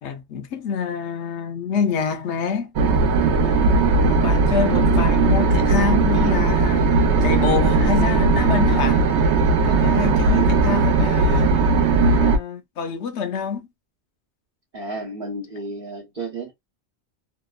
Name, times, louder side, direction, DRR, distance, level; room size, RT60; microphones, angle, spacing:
voice 1, 0.0-2.7 3.3-6.9 7.2-9.1 9.6-13.6, left 6 dB, 90° left, 0.9 m, -27 dB
sound 1, 2.8-12.4, right 3 dB, 85° right, 0.9 m, -18 dB
voice 2, 14.7-16.5, right 2 dB, 45° right, 1.0 m, -32 dB
2.8 x 2.1 x 2.3 m
omnidirectional pair, 1.2 m